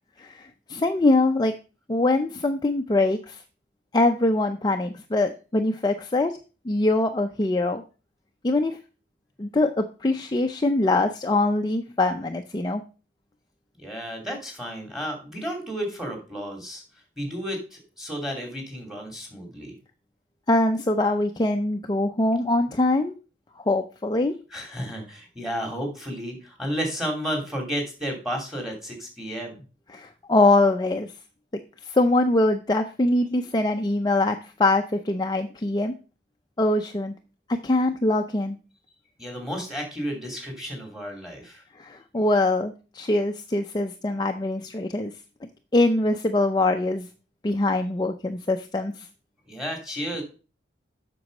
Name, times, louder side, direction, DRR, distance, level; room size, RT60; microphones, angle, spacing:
voice 1, 0.2-1.5 1.9-3.4 3.9-6.3 6.7-7.8 8.4-8.8 9.4-12.8 20.5-23.1 23.7-24.3 29.9-31.1 31.8-35.9 36.6-37.1 37.6-38.6 41.8-45.1 45.7-47.1 47.4-49.1, left 2 dB, 25° left, 5 dB, 0.5 m, -23 dB
voice 2, 13.8-16.8 17.2-19.7 24.5-29.6 39.2-41.6 49.5-50.2, equal, 5° right, 1 dB, 2.8 m, -32 dB
7.9 x 6.1 x 5.3 m, 0.34 s
head